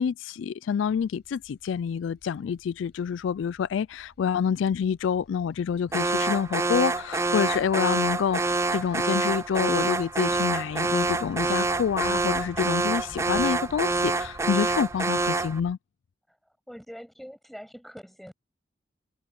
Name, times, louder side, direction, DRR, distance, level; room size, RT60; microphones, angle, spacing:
voice 1, 0.0-15.8, left 7 dB, 75° left, 0.3 m, -27 dB
sound 1, 0.9-15.7, equal, 55° left, 7.7 m, -51 dB
Alarm, 5.9-15.6, right 3 dB, 15° right, 0.4 m, -27 dB
voice 2, 16.7-18.3, equal, ahead, 6.6 m, -44 dB
head